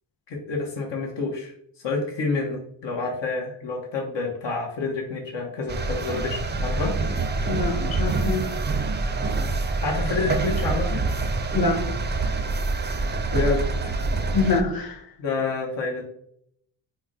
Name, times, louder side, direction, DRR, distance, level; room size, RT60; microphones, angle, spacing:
voice 1, 0.3-1.5 1.8-6.9 9.8-11.0 13.3-14.0 15.2-16.0, left 3 dB, 75° left, 0 dB, 1.1 m, -28 dB
sound 1, 5.7-14.6, right 3 dB, 25° right, 0.5 m, -26 dB
voice 2, 7.4-8.5 11.5-11.9 14.3-15.0, left 3 dB, 50° left, 0 dB, 1.3 m, -25 dB
5.7 x 2.2 x 4.1 m, 0.68 s
cardioid pair, 115°, 44 cm